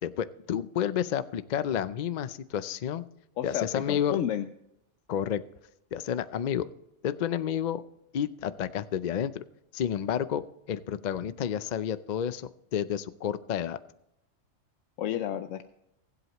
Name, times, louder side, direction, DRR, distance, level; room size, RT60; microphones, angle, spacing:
voice 1, 0.0-3.0 3.4-4.2 5.1-5.4 5.9-6.7 7.0-7.8 8.1-9.4 9.7-13.8, left 9 dB, 55° left, 14 dB, 0.5 m, -30 dB
voice 2, 3.4-4.5 15.0-15.6, left 10 dB, 75° left, 9 dB, 1.0 m, -31 dB
20.0 x 8.0 x 3.0 m, 0.84 s
omnidirectional pair, 1.3 m